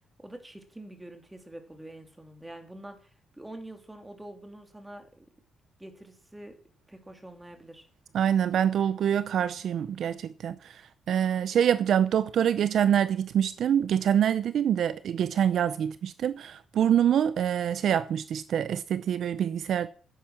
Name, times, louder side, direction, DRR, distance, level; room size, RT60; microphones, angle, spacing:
voice 1, 0.2-5.3 5.8-6.6 6.9-7.9, right 1 dB, 10° right, 2.7 m, -46 dB
voice 2, 8.1-10.6 11.1-19.9, right 9 dB, 65° right, 0.6 m, -25 dB
10.5 x 9.4 x 6.4 m
cardioid pair, 90°, 0 cm